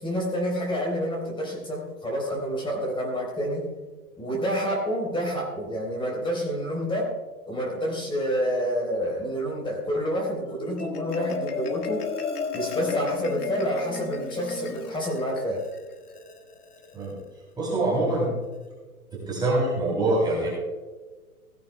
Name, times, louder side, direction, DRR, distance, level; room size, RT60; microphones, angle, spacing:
voice 1, 0.0-3.7 4.2-7.1 7.5-12.1 12.5-15.7, equal, 10° left, -1 dB, 3.7 m, -28 dB
Marimba xylophone, 10.5-17.1, left 6 dB, 85° left, 1.7 m, -34 dB
voice 2, 17.6-18.3 19.1-20.5, right 2 dB, 10° right, -4 dB, 3.0 m, -24 dB
16.5 x 16.0 x 2.2 m, 1.3 s
hypercardioid pair, 135°, 45 cm